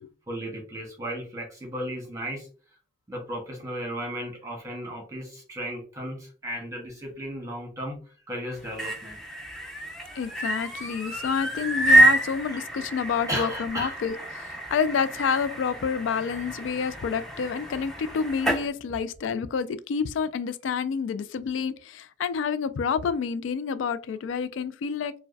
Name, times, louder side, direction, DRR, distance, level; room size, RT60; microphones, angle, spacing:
voice 1, 0.3-2.5 3.1-8.0 8.3-9.2 13.3-14.0, equal, 15° right, 1.2 m, -35 dB
sound 1, 8.5-18.7, right 1 dB, ahead, 0.6 m, -27 dB
voice 2, 10.2-25.1, left 6 dB, 85° left, 0.3 m, -28 dB
4.5 x 2.2 x 2.5 m
head